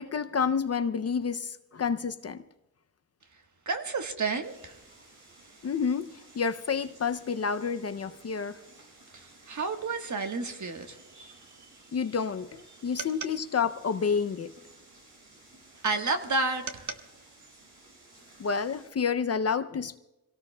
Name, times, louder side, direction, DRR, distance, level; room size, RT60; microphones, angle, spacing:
voice 1, 0.0-2.4 5.6-8.6 11.9-14.5 18.4-20.0, left 6 dB, 45° left, 11 dB, 0.5 m, -29 dB
voice 2, 3.7-4.8 9.1-11.4 15.8-17.0, right 3 dB, 50° right, 5 dB, 1.4 m, -31 dB
sound 1, 4.4-18.9, right 2 dB, 85° right, 6.1 m, -56 dB
27.5 x 17.5 x 2.2 m, 0.99 s
wide cardioid pair, 130°, 36 cm